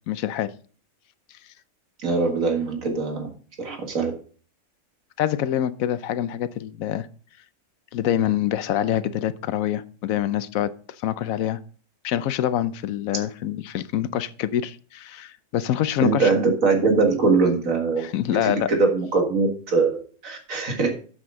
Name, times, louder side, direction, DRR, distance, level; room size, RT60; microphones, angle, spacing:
voice 1, 0.1-0.5 5.2-7.1 7.9-10.7 11.0-11.6 12.0-16.3 18.0-18.7, left 11 dB, 80° left, 15 dB, 1.0 m, -25 dB
voice 2, 2.0-3.3 3.6-4.1 16.0-18.1 18.4-19.9 20.2-20.9, right 4 dB, 75° right, 3 dB, 2.2 m, -22 dB
8.5 x 7.4 x 3.7 m, 0.41 s
omnidirectional pair, 1.4 m